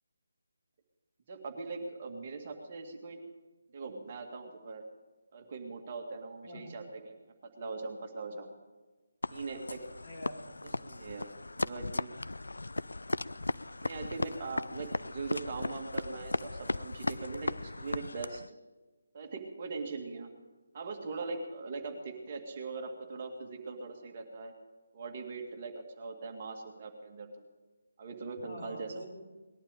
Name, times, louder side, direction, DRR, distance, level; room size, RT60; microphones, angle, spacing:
voice 1, 1.3-3.2 3.7-4.8 5.3-8.5 9.3-9.8 10.8-12.1 13.8-18.6 19.1-20.3 20.7-24.5 24.9-27.3 28.0-28.9, right 4 dB, 35° right, 3 dB, 2.1 m, -41 dB
voice 2, 6.4-6.8 10.0-10.7 28.4-29.2, left 1 dB, 40° left, -3 dB, 4.3 m, -46 dB
sound 1, 9.2-18.5, left 2 dB, 70° left, 0.4 m, -37 dB
19.5 x 11.5 x 5.1 m, 1.2 s
figure-of-eight pair, 150°, 0 cm